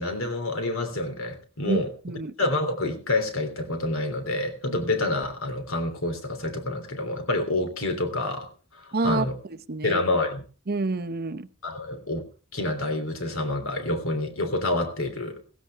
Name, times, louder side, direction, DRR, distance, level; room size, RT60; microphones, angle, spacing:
voice 1, 0.0-1.9 2.4-9.4 9.8-10.4 11.6-12.2 12.5-15.4, left 2 dB, 70° left, 3.1 m, -28 dB
voice 2, 1.7-2.3 8.9-10.0 10.7-11.5, right 3 dB, 45° right, 0.8 m, -28 dB
16.5 x 16.0 x 3.5 m
head